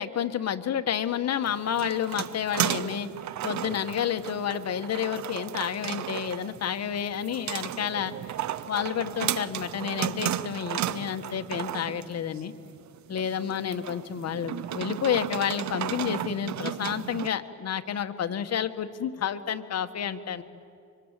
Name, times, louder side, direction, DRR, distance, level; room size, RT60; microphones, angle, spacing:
voice 1, 0.0-3.1 3.4-8.1 8.7-12.5 13.1-20.4, left 8 dB, 55° left, 8 dB, 1.6 m, -30 dB
sound 1, 1.4-17.3, right 11 dB, 65° right, 0.9 m, -34 dB
25.5 x 24.5 x 9.1 m, 2.5 s
cardioid pair, 90°, 30 cm